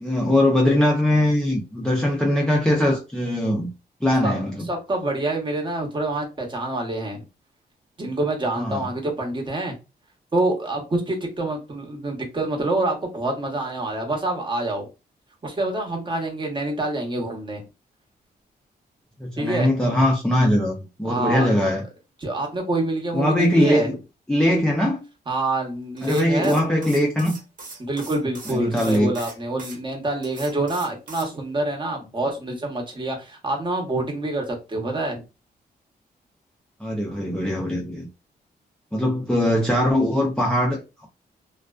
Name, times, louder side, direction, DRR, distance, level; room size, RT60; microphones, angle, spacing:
voice 1, 0.0-3.7 4.0-4.7 8.6-8.8 19.2-21.8 23.1-24.0 24.3-25.0 26.0-27.4 28.5-29.1 36.8-38.1 38.9-41.1, left 1 dB, 5° left, 0.5 m, -21 dB
voice 2, 4.7-7.2 8.0-9.7 10.3-14.9 15.4-17.6 19.4-19.7 21.0-21.5 22.2-24.0 25.3-26.6 27.8-35.2, right 2 dB, 30° right, 0.9 m, -26 dB
sound 1, 26.0-29.8 30.2-31.3, right 3 dB, 55° right, 1.0 m, -40 dB
2.4 x 2.2 x 2.3 m
cardioid pair, 100°, 17 cm